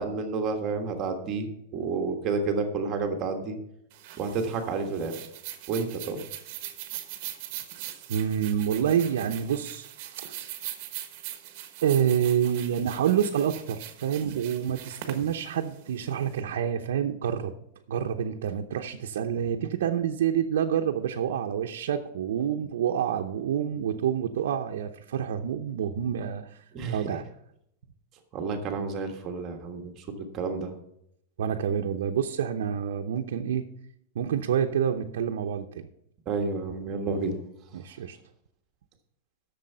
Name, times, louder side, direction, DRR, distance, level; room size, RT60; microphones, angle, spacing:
voice 1, 0.0-3.6 4.2-5.2 5.7-6.2 26.7-27.0 28.3-30.7 36.2-37.4, right 4 dB, 25° right, 4 dB, 1.4 m, -30 dB
sound 1, 3.9-16.4, right 12 dB, 40° right, 1.2 m, -41 dB
voice 2, 8.1-10.6 11.8-17.5 17.9-26.6 26.9-27.2 31.4-33.6 34.1-35.8 37.7-38.2, right 9 dB, 75° right, 3 dB, 0.8 m, -28 dB
12.0 x 6.9 x 5.6 m, 0.77 s
supercardioid pair, 175°, 0 cm